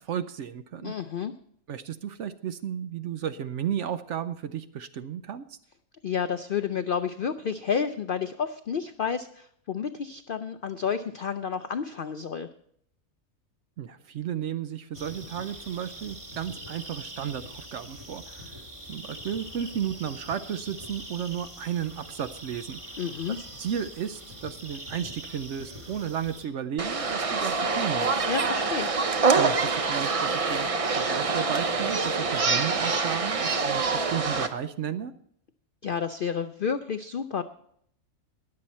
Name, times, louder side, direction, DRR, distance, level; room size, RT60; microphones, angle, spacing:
voice 1, 0.0-0.9 1.7-5.6 13.8-18.5 18.9-22.8 23.6-28.2 29.4-30.7 31.0-35.1, right 9 dB, 65° right, 12 dB, 0.8 m, -33 dB
voice 2, 0.8-1.3 6.0-12.5 23.0-23.4 28.3-28.9 35.8-37.4, left 7 dB, 80° left, 10 dB, 0.4 m, -30 dB
sound 1, 14.9-26.5, equal, 20° right, 1.9 m, -43 dB
sound 2, 26.8-34.5, right 4 dB, 45° right, 0.4 m, -25 dB
20.5 x 7.7 x 4.2 m, 0.68 s
omnidirectional pair, 1.6 m